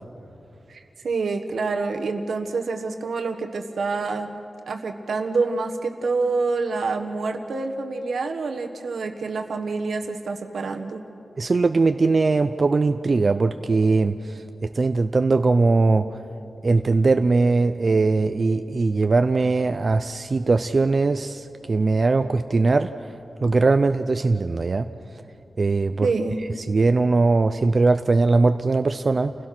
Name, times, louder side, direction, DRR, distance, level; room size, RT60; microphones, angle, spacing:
voice 1, 0.7-4.4 4.7-11.0 26.0-26.4, right 4 dB, 85° right, 5 dB, 1.4 m, -27 dB
voice 2, 11.4-16.2 16.6-22.9 23.4-24.9 25.6-26.1 26.7-29.4, right 3 dB, 45° right, 8 dB, 0.5 m, -20 dB
29.0 x 16.5 x 6.0 m, 2.7 s
wide cardioid pair, 125°, 0 cm